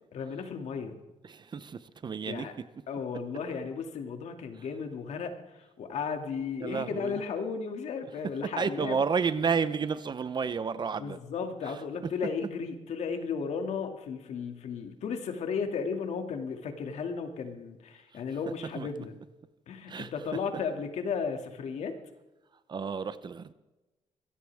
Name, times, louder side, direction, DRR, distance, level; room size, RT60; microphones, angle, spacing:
voice 1, 0.1-1.0 2.2-2.5 2.9-9.0 11.0-19.2 19.7-21.9, left 5 dB, 70° left, 2.5 m, -35 dB
voice 2, 1.3-2.5 6.6-7.1 8.6-11.2 18.8-18.9 19.9-20.1 22.7-23.5, right 5 dB, 40° right, 0.9 m, -31 dB
22.5 x 17.0 x 3.6 m
cardioid pair, 115°, 12 cm